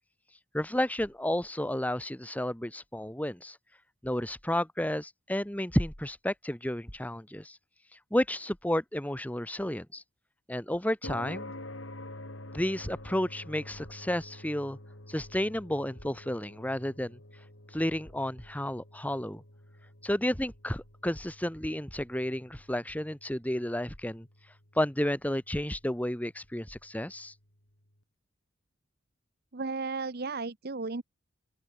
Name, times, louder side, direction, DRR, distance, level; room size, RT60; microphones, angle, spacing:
voice 1, 0.5-3.6 4.0-7.6 8.1-10.0 10.5-11.5 12.5-14.8 15.1-17.2 17.7-19.4 20.0-24.3 24.8-27.3, left 1 dB, 10° left, 1.8 m, -31 dB
sound 1, 11.0-27.5, left 1 dB, 70° left, 6.6 m, -49 dB
voice 2, 29.5-31.0, right 4 dB, 50° right, 1.0 m, -34 dB
open air
head